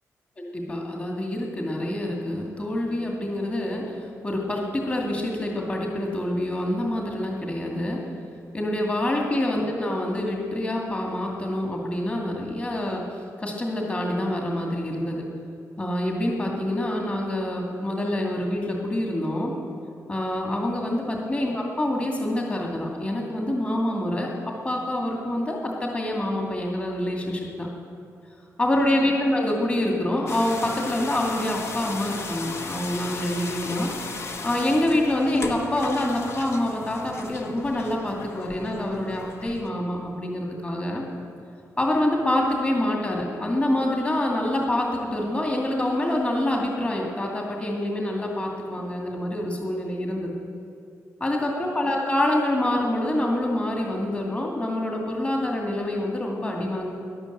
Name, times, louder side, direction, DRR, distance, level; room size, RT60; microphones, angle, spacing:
voice 1, 0.4-4.0 4.2-8.0 8.5-13.0 13.4-15.2 15.8-19.5 20.1-27.7 28.6-33.9 34.4-41.0 41.8-50.3 51.2-56.9, left 1 dB, 25° left, 0 dB, 2.3 m, -26 dB
sound 1, 30.3-39.7, left 3 dB, 50° left, 1.1 m, -36 dB
12.5 x 11.0 x 7.9 m, 2.4 s
wide cardioid pair, 135°, 6 cm